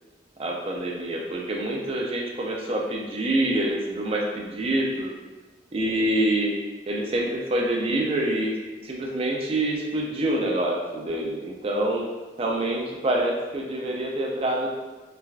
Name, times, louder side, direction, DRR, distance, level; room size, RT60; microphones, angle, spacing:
voice 1, 0.4-5.1 5.7-6.6 6.9-8.6 8.8-12.0 12.4-14.7, right 1 dB, 30° right, -1 dB, 0.4 m, -26 dB
3.2 x 2.4 x 2.3 m, 1.2 s
head